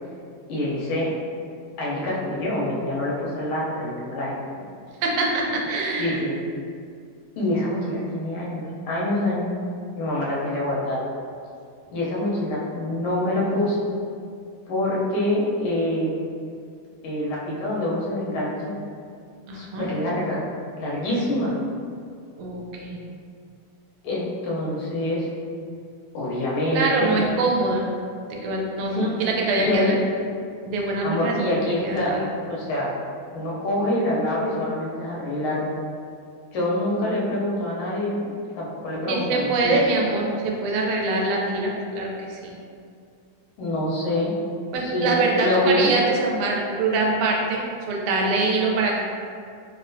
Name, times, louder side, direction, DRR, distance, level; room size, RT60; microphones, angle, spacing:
voice 1, 0.5-1.1 1.8-4.5 6.0-6.4 7.4-9.5 10.0-11.1 11.9-13.9 14.7-16.1 17.0-18.8 19.5-20.5 20.8-21.6 24.0-25.3 26.1-27.2 28.9-29.3 29.6-29.9 31.0-33.0 33.3-35.7 36.5-39.8 43.6-44.3 44.8-46.0, left 1 dB, 90° left, -5 dB, 1.6 m, -26 dB
voice 2, 5.0-6.2 19.5-19.9 22.4-23.0 26.7-27.8 28.3-30.0 30.6-31.5 31.8-32.2 39.1-42.5 44.7-49.0, right 2 dB, 85° right, -1 dB, 1.4 m, -24 dB
4.0 x 2.1 x 2.6 m, 2.3 s
omnidirectional pair, 2.3 m